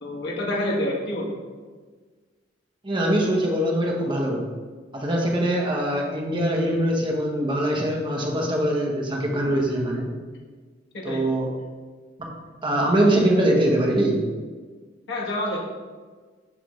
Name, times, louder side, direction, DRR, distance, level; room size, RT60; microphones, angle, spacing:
voice 1, 0.0-1.4 10.9-11.2 15.1-15.6, left 1 dB, 60° left, -4 dB, 1.4 m, -27 dB
voice 2, 2.8-4.5 4.9-10.1 11.0-11.5 12.6-14.2, right 1 dB, 25° right, -1 dB, 1.0 m, -22 dB
6.1 x 3.4 x 5.4 m, 1.5 s
head